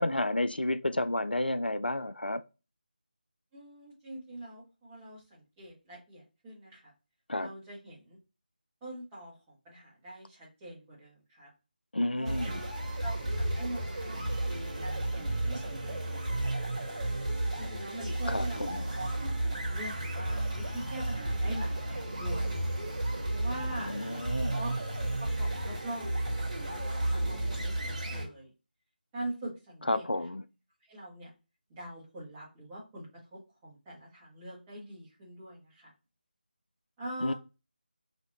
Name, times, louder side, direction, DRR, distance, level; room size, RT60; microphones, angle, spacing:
voice 1, 0.0-2.4 7.3-7.5 11.9-12.6 18.3-18.8 23.8-24.6 29.9-30.4 37.2-37.3, left 1 dB, 80° left, 0.4 m, -31 dB
voice 2, 3.5-6.9 7.4-8.2 8.8-11.5 12.1-12.7 13.0-16.9 17.6-19.1 19.5-22.6 23.3-23.9 24.5-26.3 26.7-28.5 29.1-30.0 30.9-31.3 31.7-35.9 37.0-37.3, right 1 dB, 10° right, 1.3 m, -43 dB
sound 1, 12.2-28.2, right 1 dB, 40° right, 1.7 m, -33 dB
3.3 x 2.8 x 3.8 m
figure-of-eight pair, 160°, 5 cm